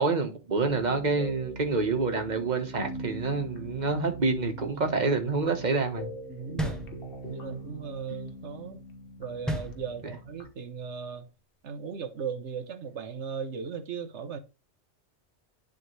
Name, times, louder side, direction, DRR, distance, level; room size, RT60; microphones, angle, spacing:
voice 1, 0.0-6.1, right 3 dB, 40° right, 1.4 m, -27 dB
sound 1, 0.6-10.5, right 1 dB, 50° left, 1.4 m, -42 dB
voice 2, 6.3-6.9 7.3-8.8 9.2-11.3 11.6-14.4, right 6 dB, 75° right, 1.2 m, -37 dB
sound 2, 6.6-7.5 9.5-10.4, equal, ahead, 0.9 m, -34 dB
11.0 x 3.6 x 3.2 m
omnidirectional pair, 1.2 m